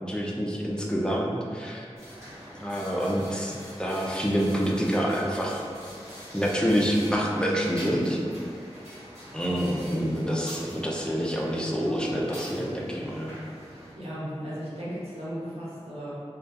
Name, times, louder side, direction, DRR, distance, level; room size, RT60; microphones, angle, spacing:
voice 1, 0.0-1.8 2.6-5.6 6.3-8.2 9.3-13.3, equal, 10° left, -3 dB, 0.4 m, -27 dB
sound 1, 2.0-13.9, equal, 25° right, 1.0 m, -45 dB
voice 2, 13.9-16.1, equal, 65° right, -10 dB, 0.8 m, -35 dB
2.2 x 2.1 x 2.7 m, 2.2 s
wide cardioid pair, 55°, 11 cm